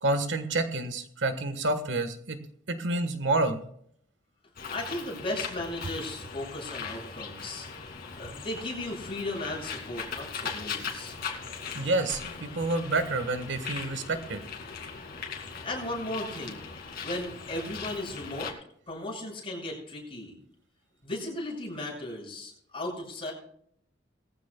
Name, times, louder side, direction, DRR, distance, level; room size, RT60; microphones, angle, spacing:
voice 1, 0.0-2.4 2.7-3.6 11.7-14.4, right 2 dB, 70° right, 8 dB, 1.4 m, -28 dB
Bird, 4.6-18.5, left 5 dB, 50° left, 2.4 m, -39 dB
voice 2, 4.7-7.7 8.1-11.2 15.6-16.7 17.0-18.5 18.9-20.4 21.0-23.3, left 1 dB, 30° left, -3 dB, 6.6 m, -36 dB
20.0 x 14.5 x 2.3 m, 0.66 s
head